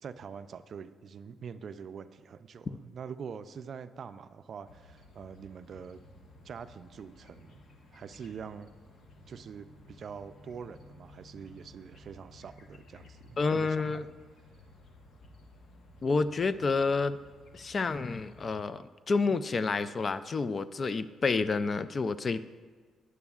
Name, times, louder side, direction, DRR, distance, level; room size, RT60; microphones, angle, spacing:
voice 1, 0.0-6.0 6.4-7.6 7.9-8.7 9.3-14.0, right 6 dB, 55° right, 12 dB, 0.4 m, -44 dB
sound 1, 4.7-18.6, left 1 dB, 65° left, 1.0 m, -55 dB
voice 2, 13.4-14.0 16.0-17.2 17.5-22.5, left 4 dB, 40° left, 14 dB, 0.3 m, -29 dB
12.5 x 9.5 x 2.4 m, 1.5 s
cardioid pair, 90°, 0 cm